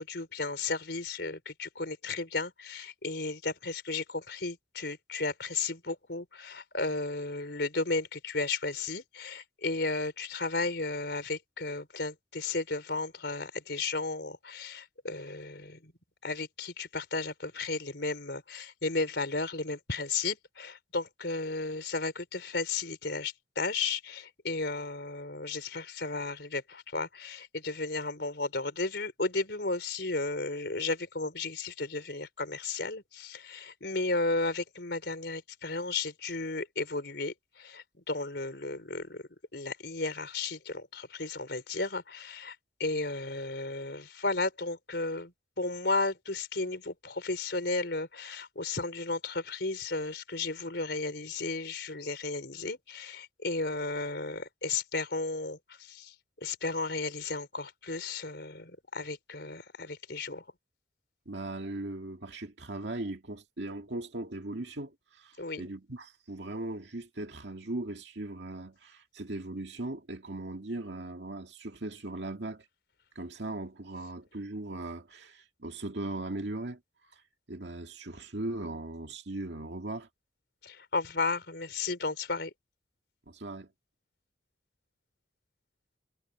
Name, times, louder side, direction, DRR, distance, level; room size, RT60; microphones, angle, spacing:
voice 1, 0.0-15.9 16.2-39.2 39.5-56.1 56.4-60.4 65.4-65.6 80.6-82.5, left 3 dB, 65° left, 4.6 m, -34 dB
voice 2, 61.3-72.7 73.2-76.8 77.1-77.2 77.5-80.1 83.3-83.7, right 2 dB, 70° right, 2.2 m, -38 dB
head